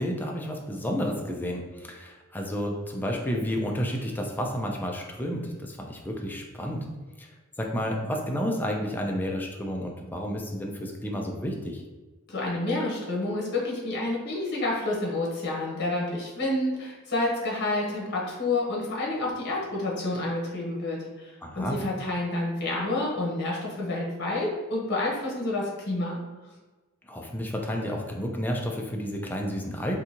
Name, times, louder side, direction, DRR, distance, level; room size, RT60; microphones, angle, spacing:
voice 1, 0.0-6.9 7.2-7.3 7.6-11.8 21.4-21.8 27.1-30.0, equal, 10° left, 0 dB, 0.4 m, -31 dB
voice 2, 12.3-26.2, left 2 dB, 55° left, -3 dB, 1.1 m, -29 dB
3.7 x 2.7 x 2.8 m, 1.2 s
head